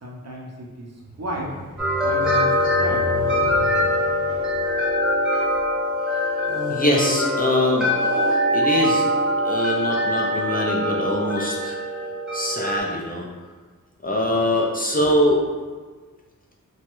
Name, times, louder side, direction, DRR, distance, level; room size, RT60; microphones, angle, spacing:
voice 1, 0.0-1.6 2.0-3.1, equal, 50° right, -2 dB, 0.6 m, -33 dB
sound 1, 1.0-5.7 6.4-8.9 9.6-9.8, equal, 50° left, 1.0 m, -34 dB
sound 2, 1.8-12.8, left 1 dB, 5° right, 0.8 m, -23 dB
voice 2, 6.7-7.9 8.5-9.1 9.4-11.8 12.3-13.3 14.0-15.5, left 1 dB, 25° left, -2 dB, 0.4 m, -22 dB
2.9 x 2.2 x 3.0 m, 1.4 s
wide cardioid pair, 95°, 34 cm